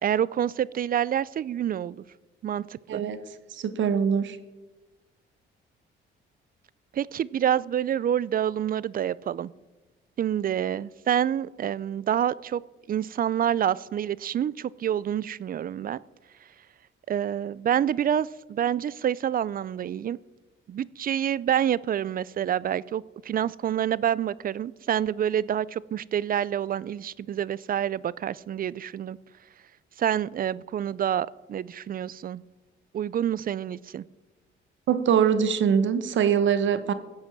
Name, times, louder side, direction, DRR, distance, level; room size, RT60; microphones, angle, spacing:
voice 1, 0.0-2.0 2.4-3.0 6.9-9.5 10.2-12.6 12.9-16.0 17.1-20.2 20.7-29.2 30.0-32.4 32.9-34.0, right 10 dB, 45° right, 22 dB, 0.5 m, -27 dB
voice 2, 3.5-4.4 34.9-36.9, right 7 dB, 70° right, 13 dB, 1.2 m, -23 dB
16.0 x 8.0 x 7.3 m, 1.2 s
cardioid pair, 90°, 20 cm